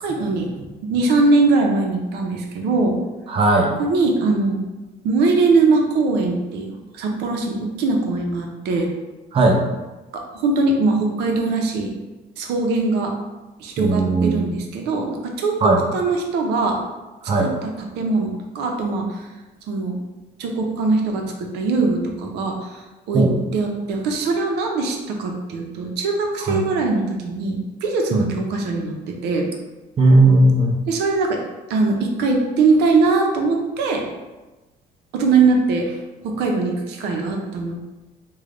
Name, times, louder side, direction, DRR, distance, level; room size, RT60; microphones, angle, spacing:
voice 1, 0.0-2.9 3.8-4.6 5.0-8.9 10.1-11.9 12.4-13.1 13.6-16.8 17.4-19.3 19.7-20.0 20.4-23.3 23.5-29.5 30.9-31.4 31.7-34.0 35.1-36.0 36.2-37.8, right 3 dB, 85° right, 2 dB, 0.7 m, -21 dB
voice 2, 3.3-3.7 9.3-9.6 13.8-14.5 15.6-15.8 17.3-17.5 23.1-23.3 26.5-26.6 28.1-28.2 30.0-30.8, right 2 dB, 35° right, 0 dB, 0.6 m, -16 dB
3.3 x 2.3 x 3.7 m, 1.1 s
cardioid pair, 110°, 17 cm